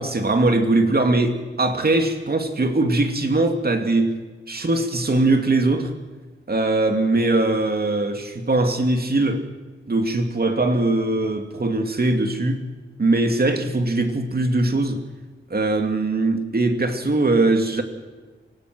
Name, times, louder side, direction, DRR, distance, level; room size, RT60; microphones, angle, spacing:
voice 1, 0.0-4.2 4.5-5.9 6.5-9.4 9.9-12.6 13.0-15.0 15.5-17.8, right 2 dB, 50° right, 2.5 m, -21 dB
25.0 x 18.5 x 6.2 m
wide cardioid pair, 100°, 20 cm